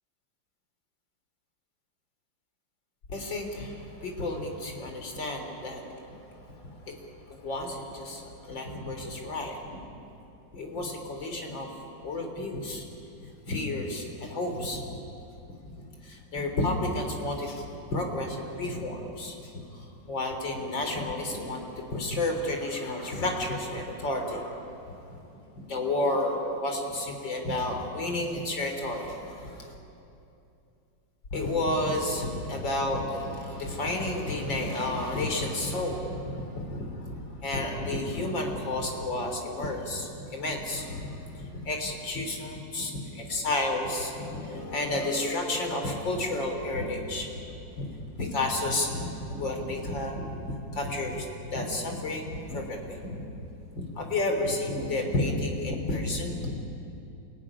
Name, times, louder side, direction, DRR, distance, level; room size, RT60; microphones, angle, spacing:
voice 1, 3.1-6.6 6.9-7.0 7.3-9.6 10.5-11.7 12.0-12.8 13.5-14.8 15.6-15.7 16.0-24.7 25.7-29.7 31.3-47.3 47.8-47.9 48.2-53.2 53.8-56.6, left 2 dB, 70° left, 3 dB, 4.3 m, -31 dB
27.5 x 18.5 x 10.0 m, 2.8 s
omnidirectional pair, 2.1 m